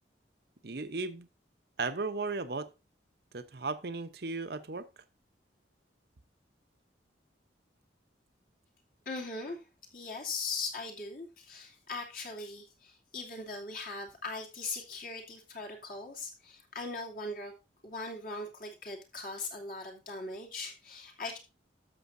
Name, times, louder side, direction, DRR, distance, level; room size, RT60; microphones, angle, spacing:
voice 1, 0.6-1.3 1.8-2.7 3.3-4.9, right 3 dB, 55° right, 0.8 m, -35 dB
voice 2, 9.1-9.6 9.9-17.5 17.8-21.4, left 3 dB, 50° left, 2.5 m, -40 dB
12.5 x 6.9 x 2.6 m
head